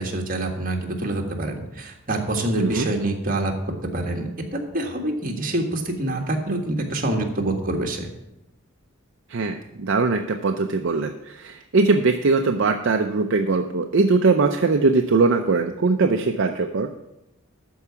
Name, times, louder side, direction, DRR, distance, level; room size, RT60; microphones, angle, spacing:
voice 1, 0.0-8.1, right 1 dB, 40° right, 2 dB, 1.7 m, -26 dB
voice 2, 2.6-2.9 9.3-16.9, right 3 dB, 60° right, 5 dB, 0.6 m, -21 dB
12.5 x 4.8 x 7.1 m, 0.90 s
head